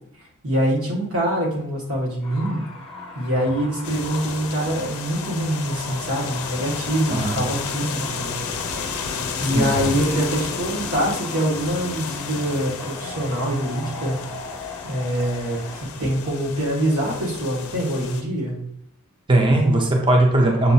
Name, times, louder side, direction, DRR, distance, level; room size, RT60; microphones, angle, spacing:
voice 1, 0.2-2.6 3.1-8.3 8.7-8.9 9.4-14.2 14.8-18.6, right 1 dB, 80° right, -2 dB, 1.4 m, -24 dB
sound 1, 2.2-15.9, left 3 dB, 25° left, 0.7 m, -37 dB
sound 2, 3.8-18.2, left 5 dB, 80° left, 0.5 m, -32 dB
voice 2, 7.1-7.4 9.5-9.8 19.3-20.7, right 2 dB, 20° right, 2 dB, 0.5 m, -18 dB
6.5 x 2.4 x 2.7 m, 0.67 s
head